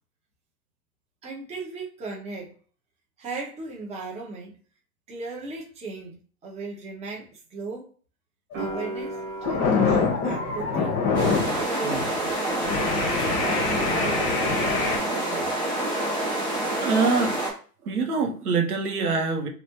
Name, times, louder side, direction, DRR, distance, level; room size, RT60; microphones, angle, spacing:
voice 1, 1.2-2.5 3.2-4.6 5.1-7.9 8.6-12.3 13.2-15.5, right 3 dB, 15° right, -2 dB, 0.9 m, -37 dB
sound 1, 8.5-8.8 9.2-11.6 12.0-12.2 12.6-15.0, left 5 dB, 25° left, 0.9 m, -25 dB
sound 2, 8.5-15.3 15.6-16.5, right 2 dB, 40° right, 1.1 m, -39 dB
sound 3, 11.1-17.5, right 1 dB, 5° left, 0.3 m, -27 dB
voice 2, 12.9-13.6 16.8-17.4 17.8-19.5, right 4 dB, 70° right, 2 dB, 1.3 m, -26 dB
3.2 x 2.7 x 2.9 m, 0.41 s
hypercardioid pair, 115°, 46 cm